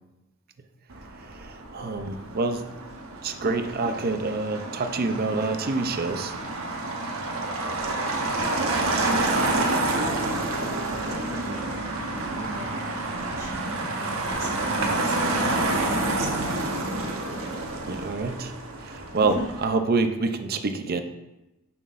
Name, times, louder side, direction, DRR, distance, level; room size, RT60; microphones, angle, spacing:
Motor vehicle (road), 0.9-19.6, right 2 dB, 70° right, 1.0 m, -28 dB
voice 1, 1.2-2.7 3.2-6.4 17.8-21.0, right 3 dB, 45° right, 7 dB, 0.6 m, -27 dB
voice 2, 9.5-9.9 11.1-11.8 12.2-16.4 16.9-17.0 19.2-19.4, right 1 dB, 15° right, -5 dB, 1.7 m, -39 dB
9.0 x 6.0 x 2.5 m, 0.97 s
head